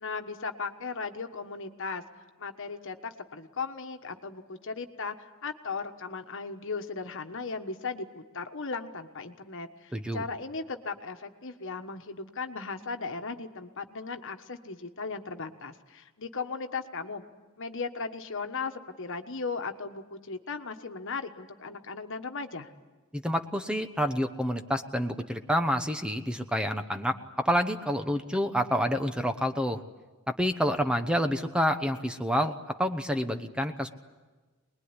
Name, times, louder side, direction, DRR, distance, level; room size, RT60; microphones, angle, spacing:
voice 1, 0.0-2.0 2.4-17.2 17.6-22.7, left 4 dB, 60° left, 6 dB, 1.4 m, -37 dB
voice 2, 9.9-10.2 23.1-29.8 30.3-32.5 32.8-33.9, equal, 5° right, 7 dB, 0.9 m, -28 dB
24.5 x 21.0 x 9.8 m, 1.3 s
head